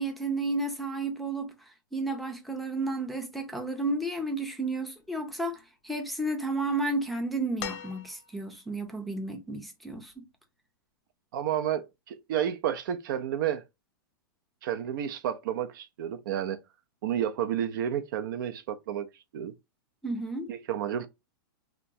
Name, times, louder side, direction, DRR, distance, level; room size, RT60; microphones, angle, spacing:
voice 1, 0.0-10.2 20.0-20.5, right 2 dB, ahead, 0.5 m, -32 dB
sound 1, 7.6-8.6 10.1-10.2, left 10 dB, 55° left, 0.5 m, -40 dB
voice 2, 11.3-13.6 14.6-16.6 17.0-19.1 19.3-19.5 20.5-21.1, right 10 dB, 65° right, 0.4 m, -31 dB
2.9 x 2.2 x 2.6 m
hypercardioid pair, 130°, 12 cm